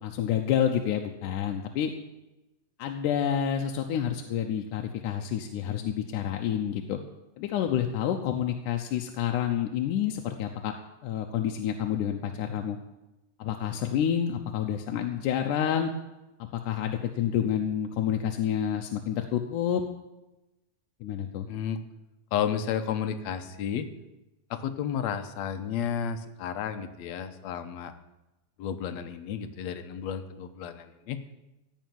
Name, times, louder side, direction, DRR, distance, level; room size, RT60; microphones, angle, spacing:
voice 1, 0.0-1.9 2.8-7.0 7.4-10.7 11.0-12.8 13.4-15.9 16.4-19.8 21.0-21.5, left 9 dB, 85° left, 4 dB, 2.4 m, -29 dB
voice 2, 21.5-21.8 22.3-23.9 24.5-27.9 28.6-31.2, left 8 dB, 70° left, 9 dB, 2.0 m, -32 dB
16.5 x 5.7 x 9.4 m, 1.0 s
omnidirectional pair, 3.5 m